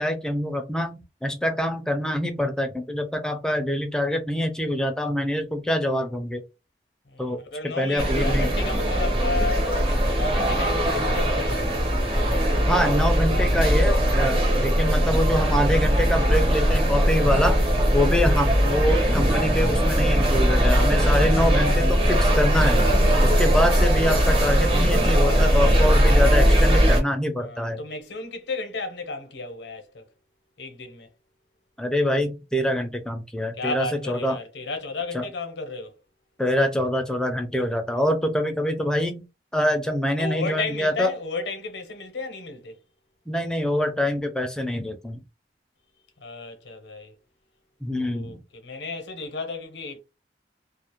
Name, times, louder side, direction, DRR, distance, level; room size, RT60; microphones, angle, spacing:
voice 1, 0.0-6.4 7.2-8.5 12.7-17.6 17.9-22.8 23.2-27.8 31.8-34.4 35.1-35.2 36.4-39.2 39.5-41.1 43.3-45.2 47.8-48.4, equal, 5° left, 0.3 m, -25 dB
voice 2, 7.1-11.8 22.8-23.4 27.4-30.0 30.6-31.1 33.6-35.9 40.2-42.8 46.2-47.1 47.9-50.0, left 3 dB, 80° left, 0.7 m, -33 dB
sound 1, 8.0-27.0, equal, 30° right, 0.7 m, -20 dB
2.3 x 2.0 x 2.9 m
head